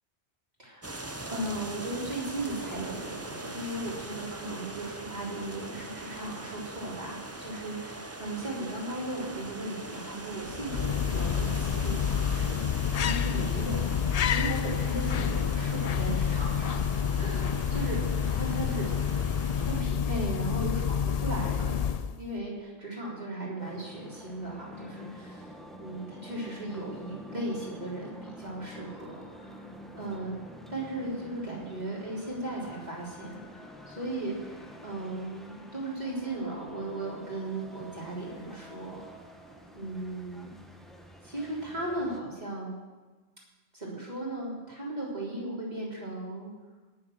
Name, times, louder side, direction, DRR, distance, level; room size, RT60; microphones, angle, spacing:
sound 1, 0.8-19.8, right 2 dB, 15° right, 0.7 m, -42 dB
voice 1, 1.2-13.8 14.2-16.9 17.2-18.0 18.3-18.9 19.7-21.9 22.2-25.5 25.8-30.4 30.7-34.4 34.8-39.0 39.7-40.5 41.2-42.8 43.7-46.5, right 1 dB, 35° right, -5 dB, 3.8 m, -36 dB
sound 2, 10.4-22.3, left 8 dB, 70° left, 0.3 m, -28 dB
sound 3, 23.6-42.2, equal, ahead, 1.2 m, -48 dB
17.5 x 7.0 x 6.5 m, 1.3 s
omnidirectional pair, 1.2 m